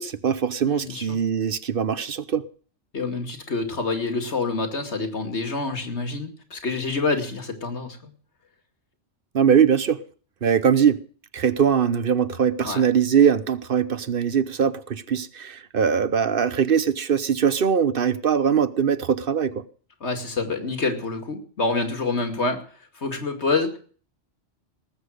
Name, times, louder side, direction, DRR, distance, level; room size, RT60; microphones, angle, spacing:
voice 1, 0.0-2.4 9.3-10.0 10.4-11.0 11.3-19.7, right 7 dB, 55° right, 1.0 m, -21 dB
voice 2, 0.7-1.2 2.9-8.1 12.6-12.8 20.0-22.6 22.9-23.8, left 3 dB, 70° left, 2.7 m, -27 dB
19.0 x 8.4 x 6.5 m
omnidirectional pair, 1.2 m